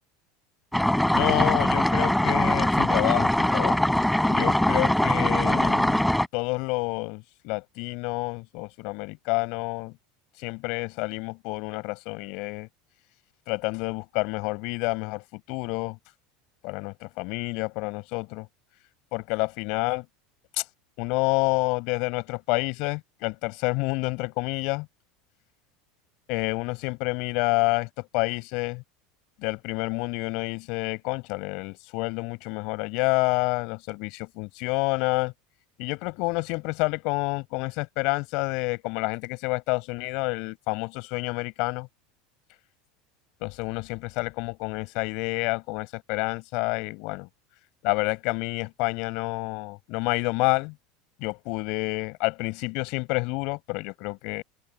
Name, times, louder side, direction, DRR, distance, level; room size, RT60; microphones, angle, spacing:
sound 1, 0.7-6.3, left 1 dB, 5° left, 4.3 m, -22 dB
voice 1, 1.1-3.8 4.3-6.0 6.3-9.9 10.4-12.7 13.5-16.0 16.6-18.5 19.1-20.1 20.6-20.7 21.0-24.9 26.3-27.9 28.1-28.8 29.4-35.3 35.8-41.9 43.4-47.3 47.8-50.7 51.2-54.4, left 27 dB, 65° left, 5.9 m, -28 dB
open air
supercardioid pair, 105°, 0 cm